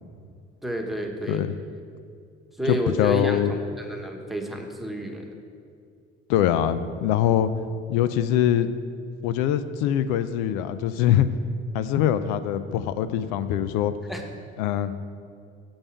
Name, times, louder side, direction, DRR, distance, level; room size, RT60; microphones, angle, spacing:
voice 1, 0.6-1.4 2.6-5.3 14.1-14.2, equal, ahead, 2 dB, 1.2 m, -30 dB
voice 2, 2.7-3.5 6.3-7.5 7.9-8.7 9.2-11.3 11.7-13.9 14.6-14.9, left 10 dB, 90° left, 12 dB, 0.5 m, -23 dB
7.1 x 5.4 x 7.3 m, 2.3 s
supercardioid pair, 85°, 29 cm